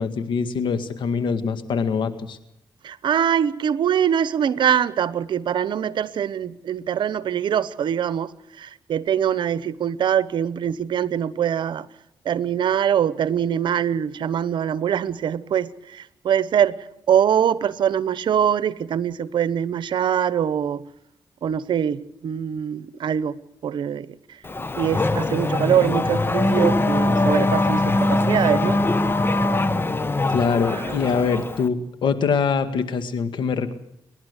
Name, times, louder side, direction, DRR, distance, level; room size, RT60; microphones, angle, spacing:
voice 1, 0.0-2.4 30.3-33.7, left 5 dB, 75° left, 10 dB, 1.9 m, -23 dB
voice 2, 2.8-8.3 8.6-11.9 12.2-16.8 17.1-20.8 21.4-23.4 23.6-24.4 24.8-28.8 30.7-31.0, right 9 dB, 70° right, 16 dB, 0.9 m, -23 dB
Race car auto racing / Accelerating revving vroom, 24.4-31.7, left 2 dB, 25° left, 1.3 m, -22 dB
29.5 x 11.5 x 8.2 m, 0.79 s
cardioid pair, 70°, 8 cm